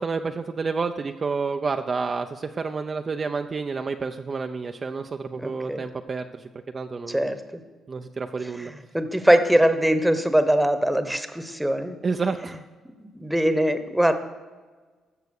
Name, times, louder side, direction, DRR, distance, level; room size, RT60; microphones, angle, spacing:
voice 1, 0.0-6.5 6.7-7.3 7.9-8.7 12.0-12.6, right 4 dB, 35° right, 6 dB, 0.6 m, -29 dB
voice 2, 5.4-5.8 7.1-7.6 8.4-12.0 13.0-14.1, right 1 dB, 5° right, 10 dB, 1.1 m, -22 dB
14.0 x 6.7 x 6.5 m, 1.4 s
cardioid pair, 90°, 0 cm